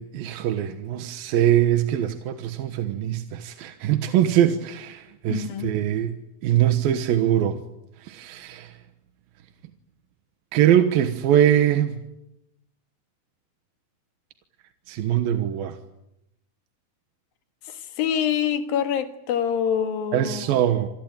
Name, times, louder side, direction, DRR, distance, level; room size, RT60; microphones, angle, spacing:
voice 1, 0.0-6.1 6.4-7.6 8.1-8.7 10.5-12.0 14.9-15.7 20.1-20.9, right 11 dB, 85° right, 3.1 m, -22 dB
voice 2, 5.3-5.8 17.7-20.6, left 8 dB, 85° left, 3.6 m, -26 dB
27.5 x 19.5 x 9.0 m
omnidirectional pair, 4.1 m